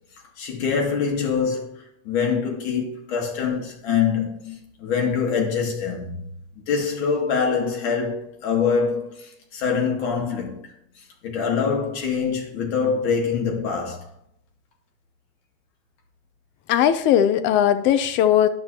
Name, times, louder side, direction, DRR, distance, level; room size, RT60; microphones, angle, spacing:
voice 1, 0.4-6.3 6.6-10.7 11.2-14.1, left 6 dB, 70° left, 2.6 m, -24 dB
voice 2, 16.7-18.5, left 10 dB, 35° left, 0.6 m, -18 dB
11.0 x 6.8 x 3.0 m
supercardioid pair, 165°, 34 cm